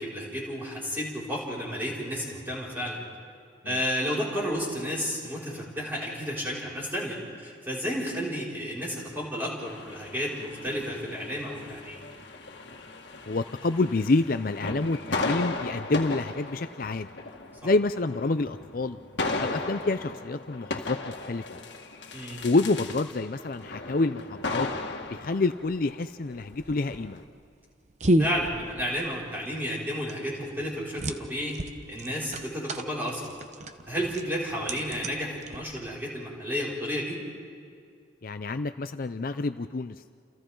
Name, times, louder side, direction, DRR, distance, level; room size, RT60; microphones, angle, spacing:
voice 1, 0.0-3.0 3.6-12.0 17.6-17.7 22.1-22.4 28.2-31.6 31.9-33.4 33.9-37.2, equal, 10° right, -6 dB, 5.7 m, -32 dB
sound 1, 9.6-27.2, left 3 dB, 65° left, 2.0 m, -36 dB
voice 2, 13.3-17.1 17.6-19.0 19.4-21.0 21.3-21.6 22.4-24.7 25.1-27.2 38.2-40.0, left 3 dB, 50° left, 10 dB, 0.5 m, -28 dB
sound 2, 26.5-36.0, right 1 dB, 40° right, 0.9 m, -32 dB
30.0 x 28.5 x 3.9 m, 2.3 s
head